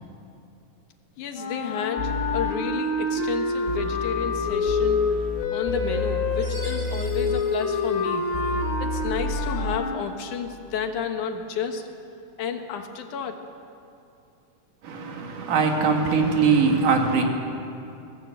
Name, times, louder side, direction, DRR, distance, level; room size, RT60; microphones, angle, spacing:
voice 1, 1.2-5.0 5.5-8.3 8.8-11.9 12.4-13.4, left 7 dB, 75° left, 2.8 m, -31 dB
sound 1, 1.3-10.0, left 3 dB, 60° left, 3.2 m, -27 dB
sound 2, 2.0-2.5 3.7-7.4 8.3-9.8, left 2 dB, 30° left, 1.3 m, -31 dB
Chime, 6.4-8.7, right 1 dB, 45° right, 8.4 m, -45 dB
voice 2, 14.8-17.2, right 5 dB, 80° right, 3.5 m, -21 dB
22.0 x 17.0 x 8.0 m
omnidirectional pair, 3.6 m